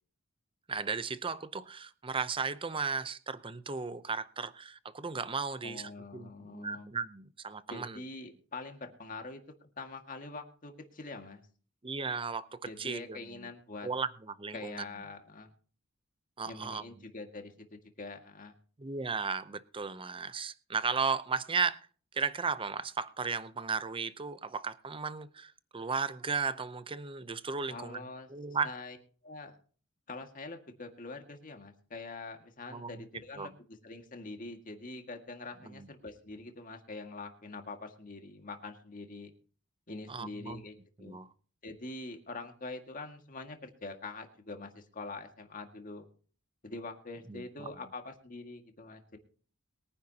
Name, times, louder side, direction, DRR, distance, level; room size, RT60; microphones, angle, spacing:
voice 1, 0.7-8.0 11.8-13.5 13.8-14.8 16.4-16.8 18.8-21.8 22.1-28.0 28.3-28.7 32.7-32.9 33.4-33.5 35.6-35.9 40.1-40.6 41.0-41.3 47.3-47.7, right 5 dB, 25° right, 0.6 m, -35 dB
voice 2, 5.6-6.9 7.7-9.4 9.8-11.4 12.7-13.9 14.5-15.5 16.4-18.5 27.7-28.3 28.6-29.0 29.2-29.5 30.1-39.3 39.9-41.2 41.6-46.1 46.6-49.2, left 3 dB, 40° left, 1.9 m, -44 dB
22.5 x 10.0 x 2.9 m
head